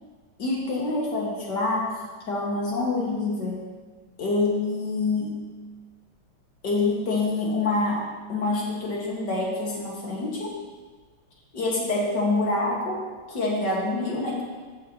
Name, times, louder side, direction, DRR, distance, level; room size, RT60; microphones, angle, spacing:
voice 1, 0.4-3.6 4.2-5.5 6.6-10.5 11.5-14.4, left 2 dB, 55° left, -3 dB, 2.4 m, -26 dB
13.5 x 8.6 x 3.0 m, 1.4 s
omnidirectional pair, 2.3 m